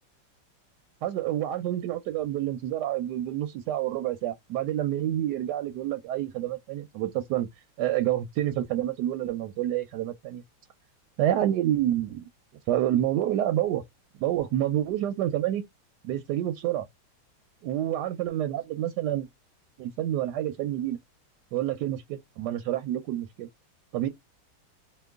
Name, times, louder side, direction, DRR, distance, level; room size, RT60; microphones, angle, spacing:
voice 1, 1.0-7.5 7.8-10.4 11.2-12.3 12.7-13.8 14.2-15.6 16.0-16.9 17.6-19.3 19.8-21.0 21.5-23.5 23.9-24.1, right 12 dB, 75° right, 1.0 m, -28 dB
2.9 x 2.5 x 3.4 m
omnidirectional pair, 2.1 m